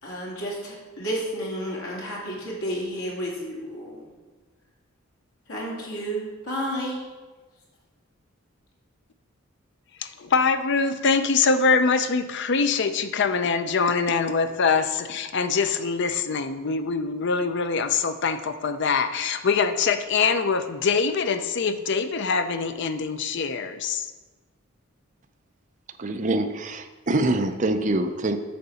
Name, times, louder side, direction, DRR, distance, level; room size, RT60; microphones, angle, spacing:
voice 1, 0.0-4.1 5.5-7.0, equal, 80° left, -4 dB, 2.5 m, -31 dB
voice 2, 10.0-24.1, left 5 dB, 55° left, 10 dB, 0.5 m, -24 dB
voice 3, 26.0-28.4, right 2 dB, 35° right, 7 dB, 0.5 m, -25 dB
8.6 x 3.9 x 6.9 m, 1.3 s
head